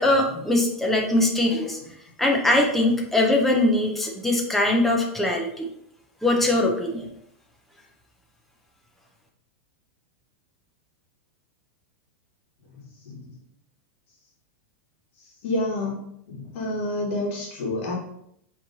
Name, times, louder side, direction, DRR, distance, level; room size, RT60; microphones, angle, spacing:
voice 1, 0.0-1.8 2.2-5.7 6.2-7.1, left 1 dB, 5° left, 0 dB, 0.5 m, -21 dB
voice 2, 13.1-13.4 15.4-17.9, left 1 dB, 55° left, -1 dB, 1.3 m, -29 dB
5.1 x 3.0 x 2.7 m, 0.73 s
supercardioid pair, 160°, 8 cm